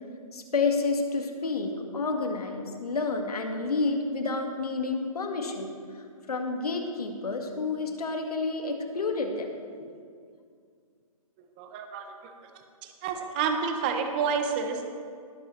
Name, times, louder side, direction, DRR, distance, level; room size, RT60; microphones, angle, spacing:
voice 1, 0.3-9.6, left 3 dB, 85° left, 3 dB, 1.7 m, -30 dB
voice 2, 11.6-12.3 12.8-14.9, right 6 dB, 15° right, 6 dB, 0.6 m, -29 dB
19.0 x 7.6 x 3.1 m, 2.2 s
hypercardioid pair, 165°, 19 cm